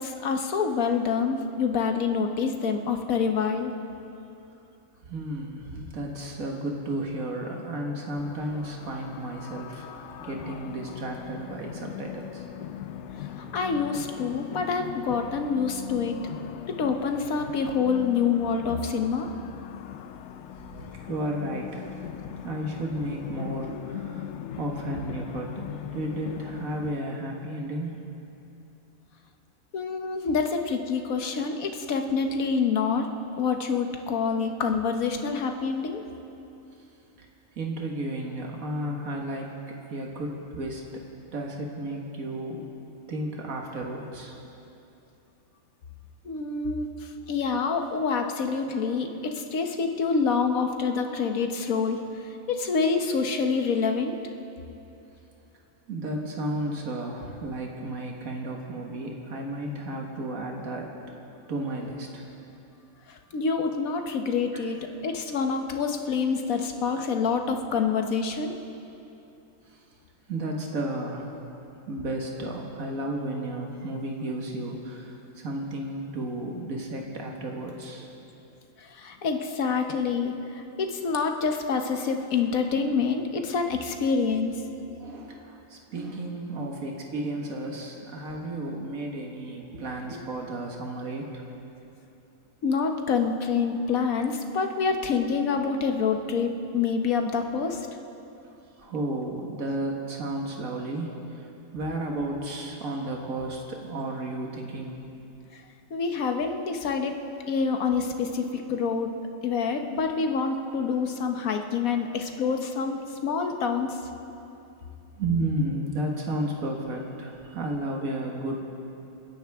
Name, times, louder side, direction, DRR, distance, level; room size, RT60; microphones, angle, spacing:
voice 1, 0.0-3.7 7.8-7.9 13.1-16.2 16.7-19.3 22.2-22.3 29.7-33.1 33.4-36.0 46.2-52.0 52.5-54.2 63.1-68.6 78.8-84.6 92.6-97.9 105.5-105.6 105.9-107.1 107.5-109.1 109.4-114.0, left 5 dB, 90° left, 5 dB, 1.5 m, -27 dB
voice 2, 5.1-12.4 20.8-22.1 22.4-24.3 24.6-25.6 25.9-28.0 37.6-41.0 41.3-42.7 43.1-44.4 55.9-60.9 61.5-62.3 64.5-64.6 69.7-69.8 70.3-71.3 71.9-78.1 85.0-91.4 98.8-101.5 101.7-105.0 114.3-114.4 115.2-118.6, right 1 dB, 80° right, 0 dB, 2.0 m, -33 dB
sound 1, 8.2-27.0, left 10 dB, 65° left, 0.8 m, -40 dB
30.0 x 10.5 x 3.5 m, 2.8 s
omnidirectional pair, 1.4 m